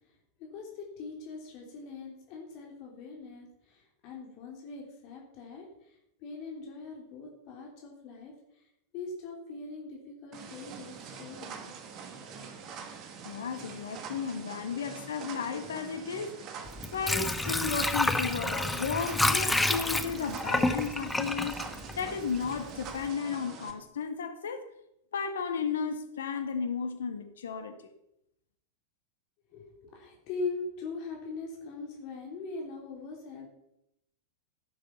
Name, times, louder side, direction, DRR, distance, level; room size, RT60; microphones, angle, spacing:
voice 1, 0.4-8.7 8.9-11.7 14.5-14.6 29.5-33.5, left 4 dB, 45° left, -1 dB, 3.3 m, -41 dB
sound 1, 10.3-23.7, right 6 dB, 35° right, 2.1 m, -44 dB
voice 2, 13.2-16.4 16.9-21.6 22.0-24.6 25.1-27.7, left 6 dB, 65° left, 8 dB, 1.7 m, -34 dB
Water / Sink (filling or washing), 16.7-22.5 22.9-23.0, left 2 dB, 5° left, 1.1 m, -29 dB
16.5 x 8.7 x 5.7 m, 0.81 s
figure-of-eight pair, 90°, 0 cm